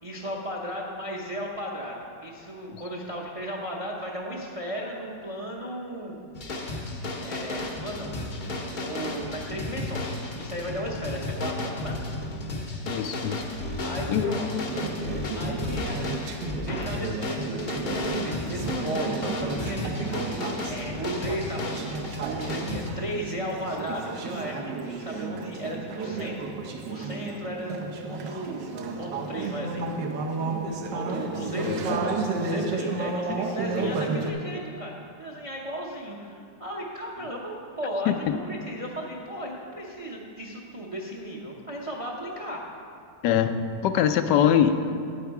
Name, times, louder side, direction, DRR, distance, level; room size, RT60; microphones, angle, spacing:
voice 1, 0.0-6.2 7.2-8.3 8.7-12.0 13.8-14.5 15.3-19.9 20.6-26.5 26.9-28.7 29.0-29.8 30.2-30.4 30.9-42.6, equal, 35° right, -1 dB, 0.5 m, -35 dB
sound 1, 6.3-22.9, left 2 dB, 45° left, 0.6 m, -33 dB
voice 2, 12.9-13.4 14.1-14.6 31.6-31.9 33.3-33.4 38.1-38.3 43.2-44.8, left 9 dB, 80° left, 9 dB, 1.2 m, -23 dB
Conversation / Chatter, 14.7-34.3, right 3 dB, 85° right, 1.4 m, -32 dB
8.9 x 8.2 x 4.7 m, 2.5 s
omnidirectional pair, 1.9 m